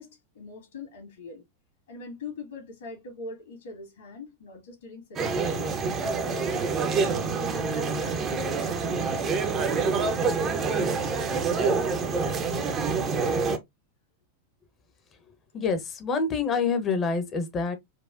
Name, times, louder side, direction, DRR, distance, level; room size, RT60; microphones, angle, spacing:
voice 1, 0.0-1.4 1.9-5.8 6.2-7.5 7.9-10.4 10.7-13.0, left 3 dB, 60° left, 1.9 m, -43 dB
sound 1, 5.2-13.6, right 4 dB, 25° right, 0.8 m, -26 dB
voice 2, 15.5-17.8, left 4 dB, 25° left, 0.9 m, -27 dB
4.7 x 2.4 x 2.5 m
figure-of-eight pair, 90°, 0 cm